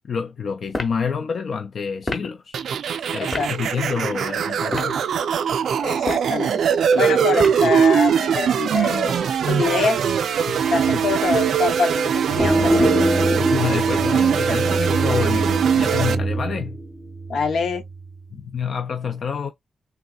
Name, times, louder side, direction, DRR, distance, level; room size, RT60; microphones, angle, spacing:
voice 1, 0.0-2.6 3.1-5.0 10.5-10.6 10.9-11.0 13.4-16.8 18.3-19.5, left 6 dB, 55° left, 0.4 m, -28 dB
sound 1, 0.7-1.0 2.0-2.3 3.3-3.5 4.6-5.0 5.9-6.3 7.4-7.7, left 2 dB, 25° left, 0.8 m, -29 dB
sound 2, 2.5-16.1, right 7 dB, 85° right, 0.3 m, -21 dB
voice 2, 3.2-3.5 5.8-6.6 7.0-9.1 9.5-10.1 10.7-13.0 17.3-17.8, left 5 dB, 75° left, 0.8 m, -25 dB
sound 3, 12.4-17.8, right 1 dB, 5° right, 0.6 m, -23 dB
3.5 x 2.7 x 2.3 m
wide cardioid pair, 165°, 0 cm